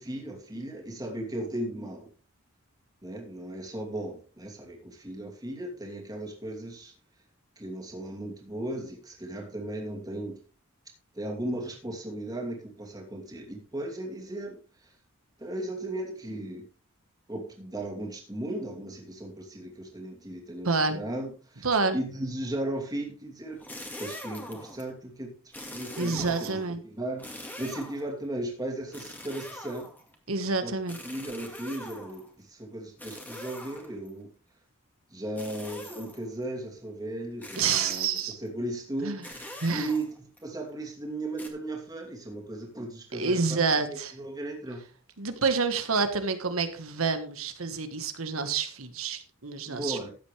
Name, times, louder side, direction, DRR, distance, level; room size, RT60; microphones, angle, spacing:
voice 1, 0.0-2.1 3.0-6.9 7.6-10.4 11.1-14.9 15.4-16.7 17.3-21.7 21.9-23.6 24.0-25.3 25.7-29.9 30.6-30.7 31.0-34.3 35.1-38.1 38.4-40.1 40.4-43.4 43.9-44.8 49.7-50.1, right 1 dB, 20° right, 0 dB, 2.7 m, -36 dB
voice 2, 20.7-21.0 21.6-22.0 26.0-26.8 30.3-31.0 37.6-38.4 39.0-39.2 39.6-39.9 43.1-44.1 45.2-50.1, right 4 dB, 85° right, 9 dB, 1.6 m, -28 dB
sound 1, 23.5-24.9 25.5-26.7 27.2-28.1 28.9-30.1 30.9-32.3 33.0-34.1 35.4-36.3 37.4-38.3 39.2-40.4 41.4-41.5, left 1 dB, 10° left, 2.1 m, -43 dB
14.0 x 8.9 x 3.4 m, 0.37 s
head